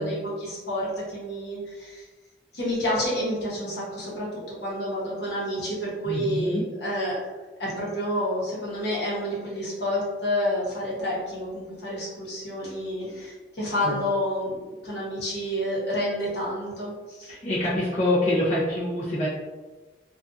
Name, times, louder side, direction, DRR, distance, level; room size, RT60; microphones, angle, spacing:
voice 1, 0.0-2.0 2.5-7.3 7.6-17.3, equal, 70° left, -6 dB, 0.9 m, -29 dB
voice 2, 6.0-6.6 13.8-14.0 17.3-19.3, left 1 dB, 45° left, -9 dB, 0.6 m, -25 dB
2.5 x 2.3 x 2.5 m, 1.3 s
head